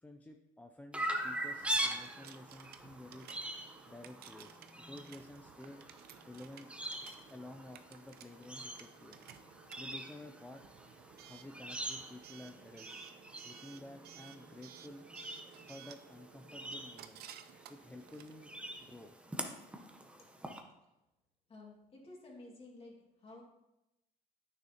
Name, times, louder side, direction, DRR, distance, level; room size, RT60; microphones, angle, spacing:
voice 1, 0.0-3.3 3.9-5.8 6.2-6.7 7.3-9.3 9.8-10.6 11.2-13.0 13.4-15.0 15.7-17.2 17.7-19.1, left 1 dB, 10° left, 4 dB, 0.4 m, -52 dB
Chirp tweet, 0.9-20.6, right 1 dB, 5° right, 0.8 m, -43 dB
Coin (dropping) / Alarm, 1.6-19.1, right 10 dB, 65° right, 0.5 m, -56 dB
voice 2, 21.5-23.4, left 2 dB, 35° left, -2 dB, 2.1 m, -53 dB
8.8 x 6.4 x 2.9 m, 0.94 s
cardioid pair, 110°, 17 cm